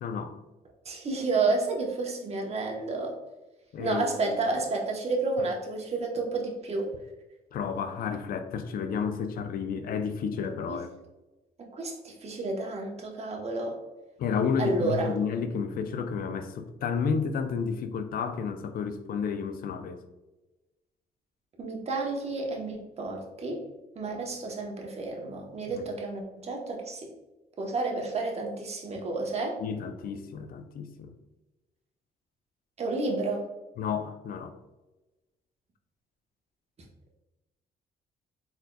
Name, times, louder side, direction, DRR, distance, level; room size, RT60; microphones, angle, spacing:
voice 1, 0.0-0.4 3.7-4.5 7.5-10.9 14.2-20.0 25.7-25.8 29.6-31.1 33.8-34.5, left 6 dB, 65° left, 8 dB, 0.5 m, -31 dB
voice 2, 0.8-3.2 3.8-6.9 10.7-10.8 11.6-13.8 14.6-15.1 21.6-23.6 24.0-27.1 27.6-29.6 32.8-33.5, right 3 dB, 40° right, 1 dB, 1.1 m, -31 dB
4.2 x 3.8 x 2.3 m, 1.1 s
cardioid pair, 85°, 16 cm